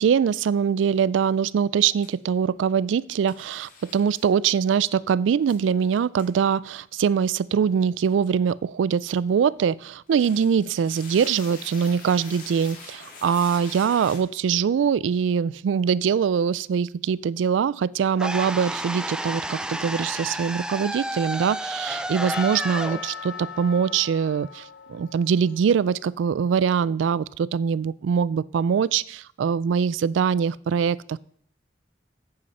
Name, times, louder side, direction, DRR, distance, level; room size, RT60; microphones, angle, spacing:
voice 1, 0.0-31.2, right 7 dB, 90° right, 21 dB, 0.3 m, -23 dB
sound 1, 2.0-2.1 3.3-4.2 5.5-5.6 6.2-6.3 10.1-14.2, left 4 dB, 45° left, 2.0 m, -43 dB
sound 2, 18.2-24.3, right 1 dB, 5° right, 0.3 m, -31 dB
Percussion / Church bell, 22.3-26.3, left 7 dB, 70° left, 0.4 m, -40 dB
8.3 x 8.2 x 5.5 m, 0.64 s
head